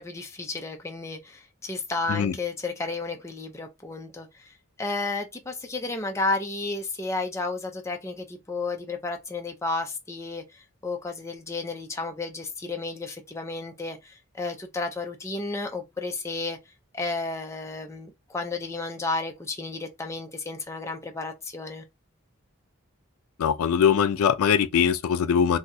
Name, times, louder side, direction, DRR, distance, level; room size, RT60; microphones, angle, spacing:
voice 1, 0.0-16.6 16.9-21.8, left 3 dB, 15° left, 0.4 m, -32 dB
voice 2, 23.4-25.6, left 7 dB, 85° left, 0.4 m, -22 dB
2.7 x 2.3 x 4.0 m
head